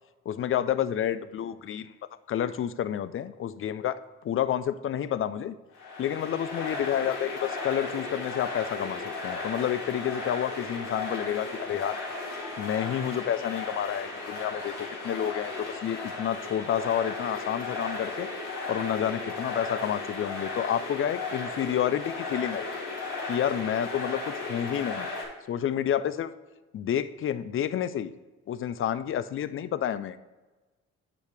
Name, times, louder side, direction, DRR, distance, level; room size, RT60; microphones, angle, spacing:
voice 1, 0.3-1.9 2.3-5.5 6.0-12.0 12.6-18.3 18.7-22.7 23.3-25.1 25.5-26.3 26.7-28.1 28.5-30.2, left 10 dB, 45° left, 14 dB, 0.4 m, -29 dB
sound 1, 5.7-25.2, left 3 dB, 90° left, 2.1 m, -35 dB
9.2 x 4.9 x 3.4 m, 1.2 s
cardioid pair, 90°, 30 cm